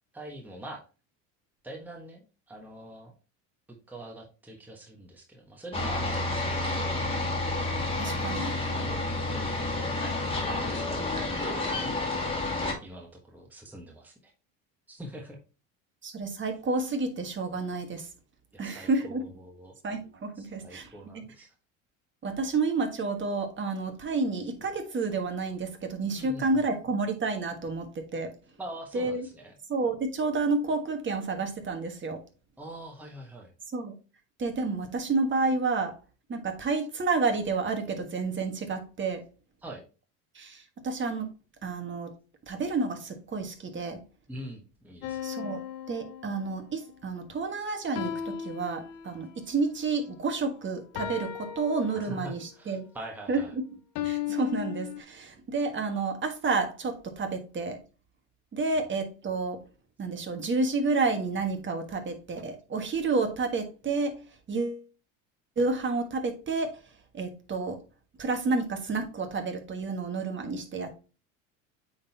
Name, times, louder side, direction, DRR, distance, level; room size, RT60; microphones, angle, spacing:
voice 1, 0.1-0.8 1.6-3.1 3.9-7.0 10.0-10.3 10.6-12.3 12.8-14.3 14.9-15.4 18.5-19.7 20.3-21.5 26.2-26.6 28.6-29.5 32.6-33.5 39.6-39.8 44.3-45.3 51.9-53.5, right 1 dB, 5° right, 1.2 m, -44 dB
sound 1, 5.7-12.7, left 2 dB, 15° left, 1.9 m, -30 dB
voice 2, 8.0-8.6 16.0-18.1 18.6-19.2 19.8-21.2 22.2-28.3 28.9-29.3 29.7-32.2 33.7-33.9 34.4-35.9 36.3-39.2 40.3-41.3 41.6-42.1 42.5-44.0 45.2-52.8 53.3-53.4 54.0-57.8 58.5-59.6 60.0-64.2 64.5-64.8 65.6-66.8 67.1-67.8 68.2-70.9, right 3 dB, 30° right, 1.5 m, -30 dB
sound 2, 45.0-46.8 47.9-49.4 50.9-52.5 53.9-55.0, left 10 dB, 65° left, 1.0 m, -36 dB
8.5 x 3.9 x 2.8 m
supercardioid pair, 95°, 40 cm